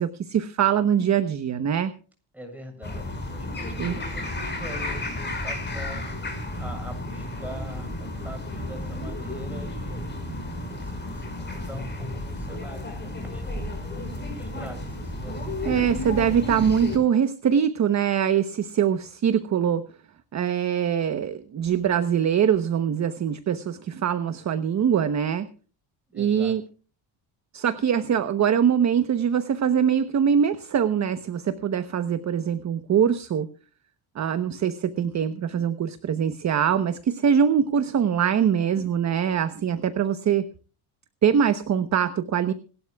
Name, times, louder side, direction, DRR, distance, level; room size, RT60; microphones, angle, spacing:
voice 1, 0.0-1.9 3.8-4.0 15.7-19.8 20.3-25.5 26.1-26.6 27.5-33.5 34.1-40.4 41.2-42.5, right 8 dB, 35° right, 10 dB, 1.0 m, -23 dB
voice 2, 2.3-6.1 6.5-10.1 10.5-15.6 26.1-26.6, equal, 5° right, 2 dB, 7.2 m, -43 dB
sound 1, 2.8-17.0, left 1 dB, 20° left, 5.1 m, -32 dB
26.5 x 12.5 x 2.4 m, 0.38 s
cardioid pair, 140°, 47 cm